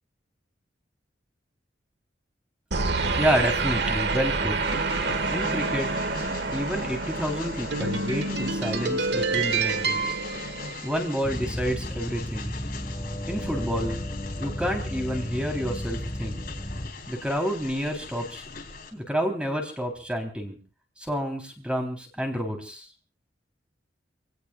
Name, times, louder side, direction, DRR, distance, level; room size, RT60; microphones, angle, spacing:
sound 1, 2.7-11.3, right 3 dB, 60° right, 1.5 m, -27 dB
voice 1, 3.2-4.6 5.3-5.9 6.5-10.2 10.8-12.6 13.3-14.0 14.4-16.4 17.1-18.4 18.9-20.6 21.0-22.9, equal, 5° right, 3 dB, 3.5 m, -29 dB
Train, 4.6-18.9, left 4 dB, 50° left, 3.6 m, -41 dB
sound 2, 11.2-16.9, equal, 25° left, 1.7 m, -33 dB
28.0 x 17.5 x 2.4 m, 0.35 s
head